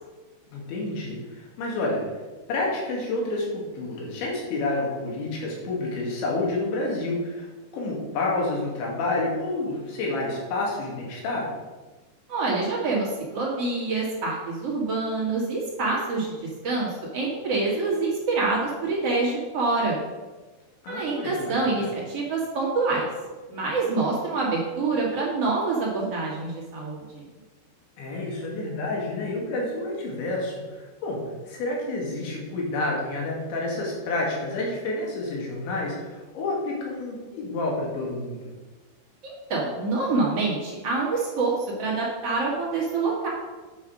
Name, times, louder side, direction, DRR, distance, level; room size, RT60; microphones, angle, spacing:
voice 1, 0.5-2.0 2.5-11.5 20.8-21.9 28.0-38.4, left 2 dB, 70° left, -2 dB, 4.5 m, -29 dB
voice 2, 12.3-20.0 20.9-23.1 23.5-27.2 39.2-43.3, right 3 dB, 40° right, -5 dB, 2.4 m, -26 dB
9.8 x 5.7 x 6.3 m, 1.2 s
omnidirectional pair, 5.6 m